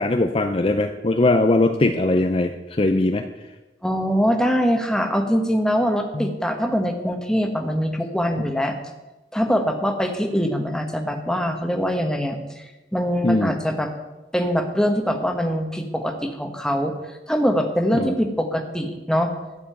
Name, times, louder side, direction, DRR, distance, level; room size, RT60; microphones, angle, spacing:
voice 1, 0.0-3.2 6.1-6.3 13.2-13.6 17.9-18.1, left 2 dB, 30° left, 6 dB, 0.6 m, -20 dB
voice 2, 3.8-8.7 9.3-12.6 12.9-13.9 14.3-16.9 17.3-19.3, equal, 5° left, 4 dB, 1.2 m, -23 dB
13.0 x 5.5 x 9.1 m, 1.1 s
head